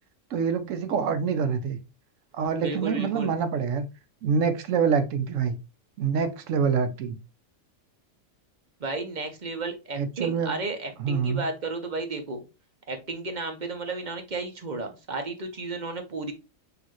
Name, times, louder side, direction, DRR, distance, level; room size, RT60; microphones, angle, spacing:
voice 1, 0.3-1.8 2.3-3.9 4.2-5.5 6.0-7.2 10.0-10.5 11.0-11.4, right 6 dB, 75° right, 1.0 m, -26 dB
voice 2, 2.6-3.3 8.8-12.4 12.9-16.3, right 3 dB, 40° right, 0.8 m, -33 dB
6.4 x 2.8 x 3.0 m
omnidirectional pair, 1.3 m